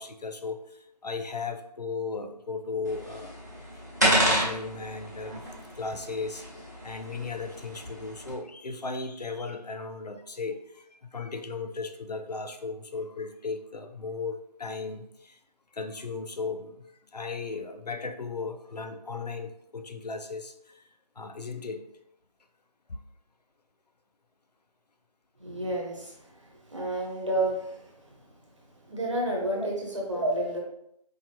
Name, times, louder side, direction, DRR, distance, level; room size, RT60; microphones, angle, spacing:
voice 1, 0.0-3.4 4.0-5.4 5.8-6.5 6.8-15.4 15.7-16.8 17.1-20.9 21.2-21.8 22.9-23.0 29.5-29.7, left 4 dB, 70° left, 8 dB, 0.5 m, -36 dB
sound 1, 2.8-8.3, equal, 25° right, 0.8 m, -30 dB
voice 2, 25.4-26.1 26.7-27.8 28.9-30.6, right 1 dB, 45° right, -2 dB, 1.1 m, -29 dB
4.6 x 2.7 x 2.8 m, 0.76 s
figure-of-eight pair, 180°, 21 cm